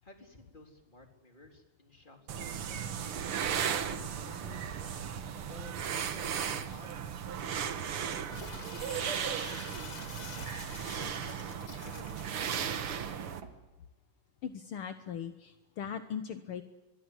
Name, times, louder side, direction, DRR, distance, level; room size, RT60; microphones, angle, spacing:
voice 1, 0.0-4.8 5.5-8.2 8.7-10.2 10.8-13.2, left 2 dB, 15° left, 3 dB, 3.7 m, -55 dB
sound 1, 2.3-13.4, right 8 dB, 55° right, 1.7 m, -36 dB
Knock, 8.0-8.9 10.0-10.8 13.0-13.7, right 4 dB, 40° right, 3.0 m, -51 dB
Crumpling crinkling, 8.3-12.7, left 5 dB, 45° left, 1.2 m, -47 dB
voice 2, 14.4-16.6, left 8 dB, 65° left, 9 dB, 1.3 m, -39 dB
25.0 x 22.5 x 8.1 m, 1.1 s
omnidirectional pair, 3.7 m